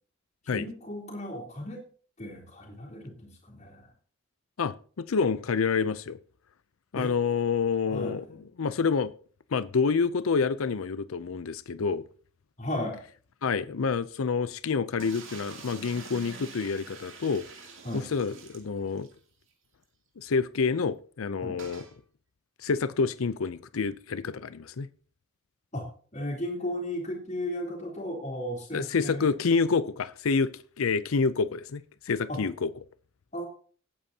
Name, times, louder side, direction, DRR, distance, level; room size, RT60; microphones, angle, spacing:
voice 1, 0.4-1.8 2.2-3.9 6.9-7.1 7.9-8.4 12.6-13.0 17.8-18.0 21.4-21.6 25.7-29.3 32.3-32.4 33.3-33.5, left 1 dB, 35° left, 3.4 m, -35 dB
voice 2, 4.6-6.2 6.9-8.3 8.6-9.1 9.5-12.0 13.4-17.4 17.9-19.1 20.2-21.8 22.6-24.9 28.7-30.5 30.8-31.8 32.1-32.7, left 5 dB, 80° left, 0.5 m, -28 dB
sound 1, 15.0-19.2 19.5-19.6 19.8-19.9 21.6-21.9, right 5 dB, 65° right, 2.4 m, -46 dB
18.0 x 8.8 x 2.8 m
head